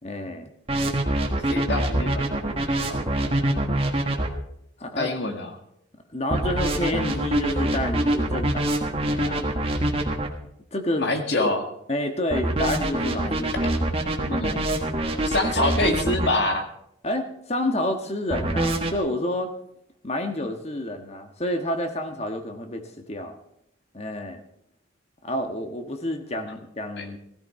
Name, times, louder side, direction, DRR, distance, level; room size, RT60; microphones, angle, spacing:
voice 1, 0.0-0.5 4.8-5.1 6.1-9.5 10.7-11.1 11.4-11.5 11.9-13.7 14.4-14.6 17.0-19.5 20.0-23.3 23.9-24.4 25.2-27.2, left 1 dB, 30° left, 5 dB, 1.5 m, -29 dB
sound 1, 0.7-4.3 6.3-10.3 12.3-16.3 18.3-18.9, right 1 dB, 30° right, 1.5 m, -24 dB
voice 2, 1.5-3.5 5.0-5.5 11.0-11.6 14.2-14.5 15.3-16.7 27.0-27.1, left 2 dB, 55° left, 5 dB, 1.8 m, -26 dB
16.0 x 15.0 x 4.3 m, 0.74 s
head